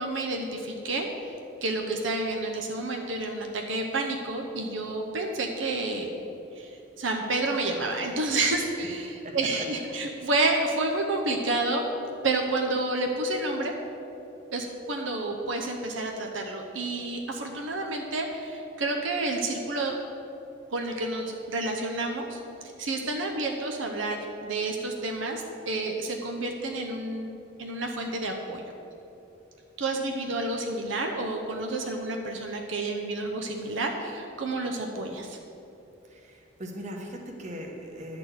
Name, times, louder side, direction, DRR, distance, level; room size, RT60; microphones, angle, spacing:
voice 1, 0.0-1.3 1.6-6.1 6.6-11.8 12.2-13.7 14.5-20.0 20.7-22.4 22.8-28.6 29.8-35.4, right 2 dB, 75° right, 2 dB, 0.8 m, -30 dB
voice 2, 9.2-9.7 36.0-38.2, equal, 35° right, 2 dB, 1.1 m, -39 dB
10.0 x 4.4 x 7.8 m, 2.9 s
head